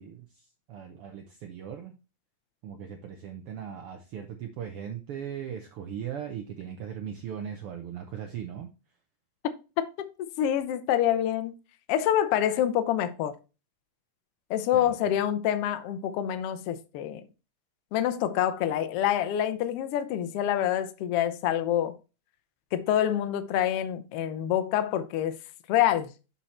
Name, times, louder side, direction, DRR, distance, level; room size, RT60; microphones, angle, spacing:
voice 1, 0.0-1.9 2.6-8.7 14.7-15.2, right 8 dB, 85° right, 1.2 m, -39 dB
voice 2, 9.4-10.1 10.4-11.5 11.9-13.3 14.5-17.2 17.9-21.9 22.7-25.3 25.7-26.1, left 11 dB, 85° left, 1.3 m, -26 dB
7.3 x 4.3 x 4.2 m
omnidirectional pair, 3.5 m